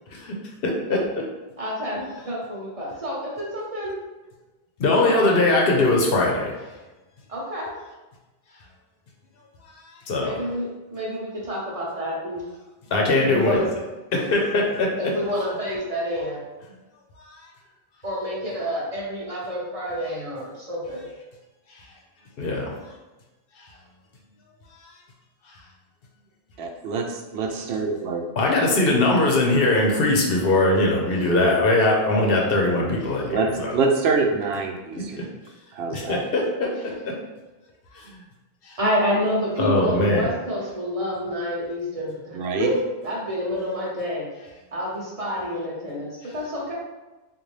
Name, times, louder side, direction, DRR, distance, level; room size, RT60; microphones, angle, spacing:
voice 1, 0.6-1.2 4.8-6.7 9.6-10.4 12.9-13.7 14.1-14.9 17.2-17.5 21.7-21.9 22.4-22.9 23.6-23.7 24.7-25.0 25.5-25.6 28.4-33.8 35.2-35.3 35.9-37.1 37.9-38.2 38.6-38.8 39.6-40.3 46.2-46.3, left 2 dB, 70° left, -1 dB, 0.9 m, -22 dB
voice 2, 1.6-4.0 4.9-5.4 7.3-7.7 10.2-12.4 13.3-13.7 15.0-16.4 18.0-21.0 38.8-44.3 44.7-46.7, equal, 35° right, -4 dB, 1.0 m, -28 dB
voice 3, 26.6-28.2 31.2-31.5 33.2-35.2 35.7-36.2 42.3-42.7, right 4 dB, 85° right, 2 dB, 0.8 m, -25 dB
3.9 x 2.5 x 3.2 m, 1.1 s
omnidirectional pair, 1.0 m